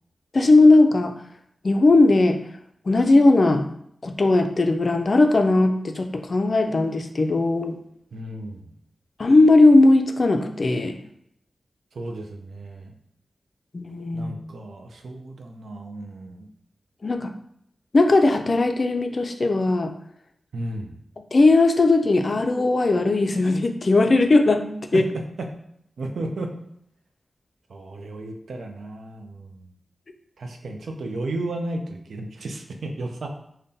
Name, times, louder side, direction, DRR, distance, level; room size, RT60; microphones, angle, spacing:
voice 1, 0.3-1.1 1.6-2.4 2.9-3.6 4.0-7.8 9.2-11.0 13.7-14.3 17.0-17.3 17.9-19.9 21.2-24.7 24.9-25.1, left 2 dB, 60° left, 6 dB, 0.3 m, -18 dB
voice 2, 8.1-8.7 11.9-12.9 14.1-16.5 20.5-21.0 24.9-25.0 26.0-26.6 27.7-29.7 30.4-33.3, right 2 dB, 85° right, 3 dB, 0.4 m, -33 dB
2.6 x 2.1 x 3.6 m, 0.72 s
cardioid pair, 40°, 0 cm